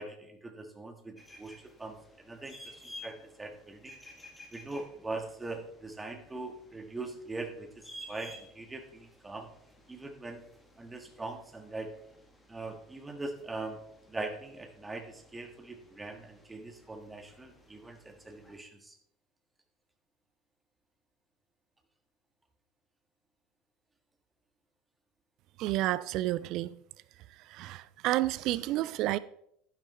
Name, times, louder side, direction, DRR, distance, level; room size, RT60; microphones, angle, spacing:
voice 1, 0.0-4.0 4.5-9.5 9.9-10.4 10.8-11.9 12.5-13.8 14.1-19.0, right 2 dB, 15° right, 1.6 m, -42 dB
sound 1, 1.2-18.6, left 1 dB, 10° left, 1.7 m, -54 dB
voice 2, 25.6-26.7 27.5-29.2, right 16 dB, 50° right, 0.3 m, -30 dB
11.5 x 10.0 x 3.2 m
figure-of-eight pair, 75°, 0 cm